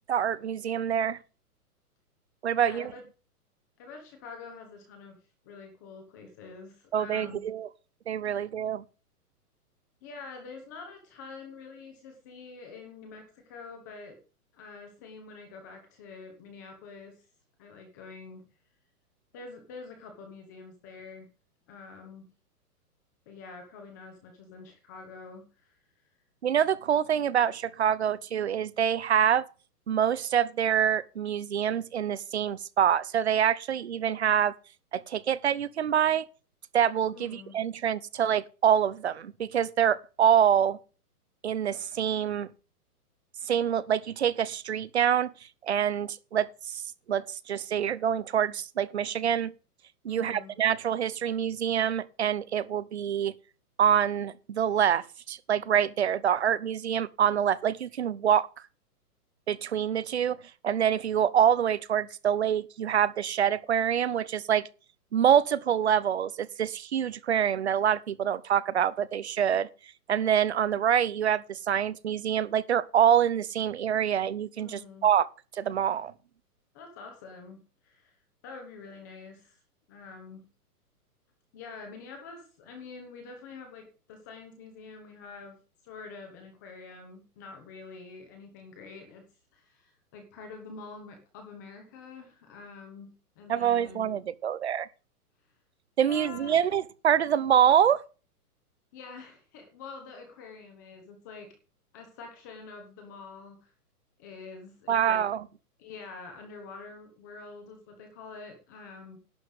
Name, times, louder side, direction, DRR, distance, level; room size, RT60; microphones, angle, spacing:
voice 1, 0.1-1.2 2.4-2.9 6.9-7.7 8.1-8.8 26.4-29.4 29.9-34.5 34.9-36.2 36.7-40.8 41.4-42.5 43.5-45.3 45.6-46.8 47.1-49.5 50.0-53.3 53.8-58.5 59.5-60.4 60.6-64.7 65.1-69.7 70.1-75.3 75.5-76.1 93.5-94.9 96.0-98.0 104.9-105.4, right 9 dB, 45° right, 0.7 m, -26 dB
voice 2, 2.5-3.0 3.8-5.2 5.4-7.5 10.0-14.2 14.5-17.2 17.6-18.4 19.3-21.3 21.7-22.3 23.3-25.8 37.1-37.6 50.1-50.5 74.6-75.1 76.7-78.1 78.4-79.6 79.9-80.4 81.5-85.6 85.8-89.3 89.5-94.1 96.0-96.6 98.9-101.5 101.9-103.7 104.2-105.2 105.8-109.2, left 4 dB, 10° left, 1.0 m, -46 dB
11.5 x 5.5 x 7.9 m
hypercardioid pair, 180°, 46 cm